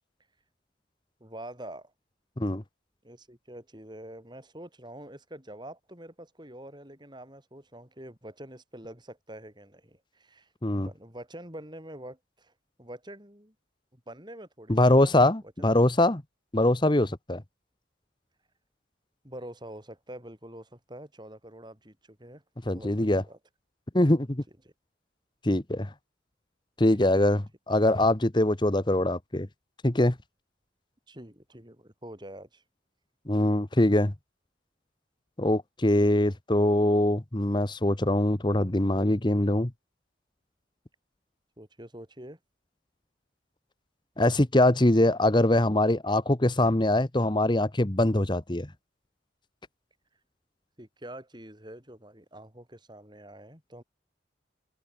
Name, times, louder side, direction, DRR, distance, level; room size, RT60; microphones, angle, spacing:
voice 1, 1.2-1.9 3.0-12.5 12.8-13.5 13.9-15.2 15.6-15.7 19.2-22.4 22.7-23.4 24.6-24.7 27.1-27.2 31.1-32.6 41.6-42.4 50.1-50.2 50.8-53.8, right 1 dB, 25° right, 7.4 m, -46 dB
voice 2, 14.7-16.2 16.5-17.4 22.7-23.2 23.9-24.4 25.4-25.9 26.8-29.5 29.8-30.1 33.3-34.1 35.4-39.7 44.2-48.7, left 1 dB, 25° left, 1.2 m, -23 dB
head